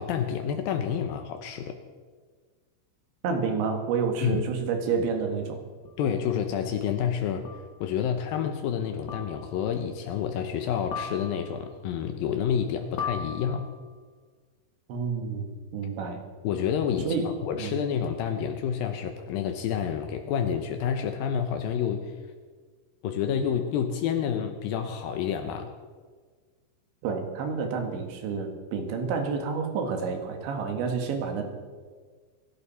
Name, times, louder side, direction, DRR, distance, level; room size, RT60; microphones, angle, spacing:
voice 1, 0.0-1.8 4.2-4.4 6.0-7.5 7.8-13.7 16.4-17.1 17.4-22.1 23.0-25.7, left 8 dB, 90° left, 6 dB, 2.0 m, -29 dB
voice 2, 3.2-5.6 14.9-16.2 17.1-17.3 17.6-17.7 27.0-31.4, right 5 dB, 75° right, 4 dB, 4.0 m, -29 dB
sound 1, 5.9-6.0 7.5-7.8 9.1-9.7 10.9-11.7 13.0-13.9, left 6 dB, 60° left, 2.2 m, -37 dB
25.5 x 12.0 x 4.2 m, 1.5 s
omnidirectional pair, 5.3 m